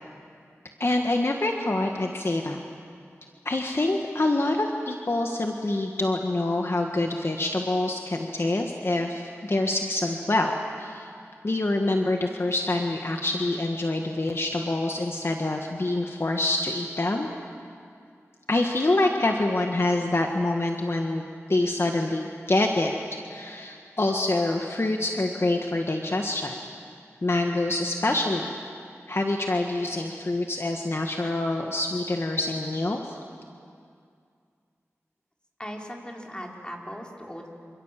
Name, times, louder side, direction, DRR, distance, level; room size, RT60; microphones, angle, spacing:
voice 1, 0.8-2.6 3.5-11.1 11.4-17.3 18.5-22.9 23.3-26.5 27.2-28.6 29.1-33.2, left 2 dB, 50° left, 2 dB, 1.6 m, -26 dB
voice 2, 35.6-37.5, equal, 15° left, 0 dB, 4.3 m, -38 dB
27.5 x 26.5 x 7.6 m, 2.3 s
wide cardioid pair, 55°, 5 cm